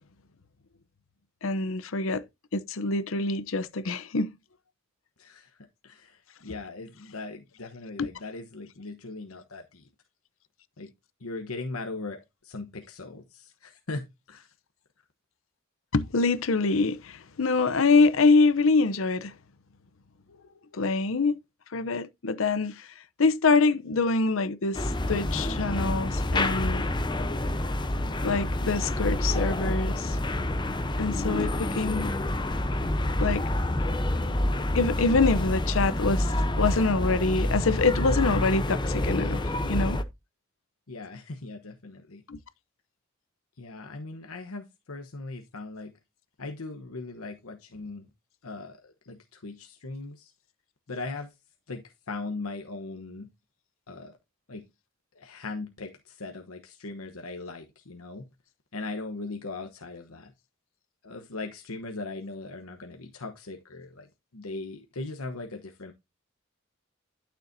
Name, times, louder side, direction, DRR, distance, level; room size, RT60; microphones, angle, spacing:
voice 1, 1.4-2.2 2.5-4.3 8.0-8.1 15.9-19.3 20.7-21.4 21.7-22.9 23.2-26.9 28.2-30.2 31.0-32.1 33.2-33.4 34.7-36.3 36.6-40.0 42.3-42.4, left 3 dB, 70° left, 0.7 m, -25 dB
voice 2, 5.2-5.5 5.8-9.9 10.8-10.9 11.2-14.5 40.9-42.2 43.6-45.9 46.4-48.1 48.4-50.3 50.9-51.3 51.7-53.3 53.9-54.1 54.5-54.6 55.2-58.3 58.7-60.3 61.0-64.1 64.3-65.9, left 3 dB, 85° left, 1.1 m, -39 dB
sound 1, 24.7-40.0, left 1 dB, 20° left, 0.8 m, -28 dB
12.0 x 6.9 x 2.7 m
head